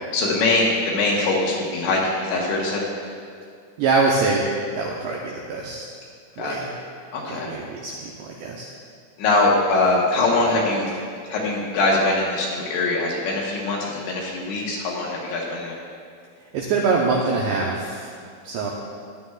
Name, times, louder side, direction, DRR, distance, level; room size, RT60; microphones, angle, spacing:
voice 1, 0.1-2.9 6.4-6.6 7.1-7.5 9.2-10.9 11.3-15.8, left 2 dB, 70° left, -3 dB, 3.2 m, -22 dB
voice 2, 3.8-4.4 4.7-5.8 6.4-6.7 7.3-8.7 16.5-18.1 18.4-18.7, right 4 dB, 90° right, -2 dB, 2.4 m, -24 dB
15.5 x 11.5 x 2.4 m, 2.3 s
omnidirectional pair, 6.0 m